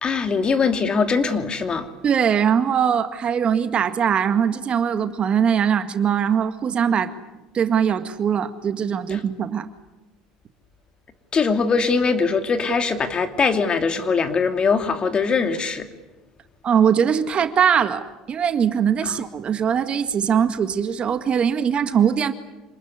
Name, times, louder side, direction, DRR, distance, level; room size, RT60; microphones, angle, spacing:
voice 1, 0.0-1.9 9.1-9.2 11.3-15.9, left 5 dB, 35° left, 7 dB, 2.7 m, -21 dB
voice 2, 2.0-7.1 7.5-9.7 16.6-22.3, right 8 dB, 40° right, 9 dB, 1.9 m, -21 dB
27.0 x 20.0 x 9.7 m, 1.1 s
hypercardioid pair, 75°, 3 cm